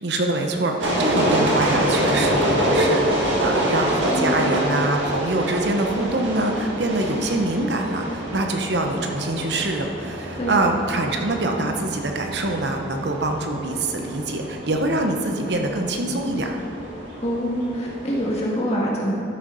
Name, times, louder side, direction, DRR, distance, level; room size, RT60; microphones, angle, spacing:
voice 1, 0.0-16.6, right 2 dB, 65° right, 3 dB, 0.9 m, -24 dB
sound 1, 0.8-18.4, right 1 dB, 90° right, 2.0 m, -26 dB
voice 2, 4.1-4.4 10.4-10.6 17.2-19.1, equal, 35° left, -4 dB, 1.8 m, -25 dB
12.0 x 6.4 x 5.5 m, 2.7 s
head